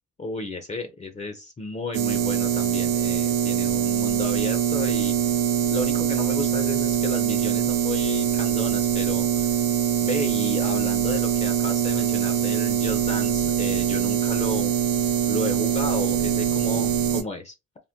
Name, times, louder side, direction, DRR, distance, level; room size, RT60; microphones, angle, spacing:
voice 1, 0.2-5.1 5.7-9.5 10.0-14.8 15.3-17.5, left 3 dB, 25° left, 0.5 m, -33 dB
sound 1, 1.9-17.2, right 9 dB, 85° right, 0.7 m, -23 dB
3.5 x 2.1 x 2.7 m
cardioid pair, 90°, 30 cm